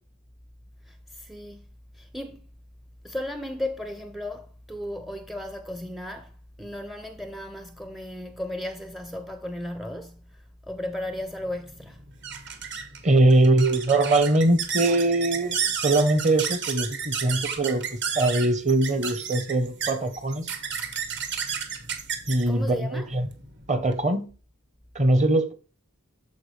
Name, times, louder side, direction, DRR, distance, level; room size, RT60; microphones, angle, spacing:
voice 1, 0.9-1.7 1.9-2.5 3.0-12.0 22.5-23.1, left 1 dB, ahead, 0.4 m, -35 dB
sound 1, 11.1-24.0, right 7 dB, 55° right, 1.2 m, -32 dB
voice 2, 13.0-17.8 18.1-20.5 22.3-23.3 23.7-24.3 24.9-25.5, right 2 dB, 30° right, 0.9 m, -22 dB
13.0 x 4.6 x 3.3 m
head